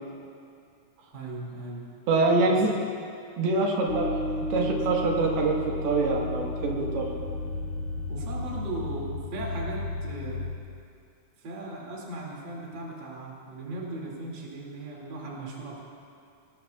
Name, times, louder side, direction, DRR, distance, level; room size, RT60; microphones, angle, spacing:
voice 1, 1.1-1.9 2.5-2.6 8.1-10.5 11.4-15.8, right 2 dB, 35° right, -3 dB, 2.5 m, -37 dB
voice 2, 2.1-2.8 3.4-7.1, right 3 dB, 80° right, -1 dB, 3.4 m, -25 dB
sound 1, 3.9-10.5, left 2 dB, 60° left, 4.5 m, -33 dB
23.0 x 18.5 x 2.3 m, 2.4 s
omnidirectional pair, 4.5 m